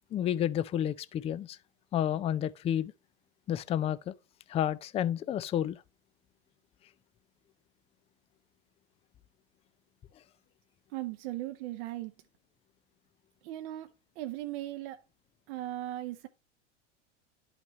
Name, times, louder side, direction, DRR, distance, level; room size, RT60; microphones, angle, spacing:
voice 1, 0.1-1.6 1.9-2.9 3.5-4.1 4.5-5.8, left 10 dB, 20° left, 0.3 m, -30 dB
voice 2, 10.9-12.1 13.4-13.9 14.2-15.0 15.5-16.3, right 15 dB, 60° right, 0.7 m, -38 dB
10.0 x 5.8 x 3.0 m
hypercardioid pair, 100°, 35 cm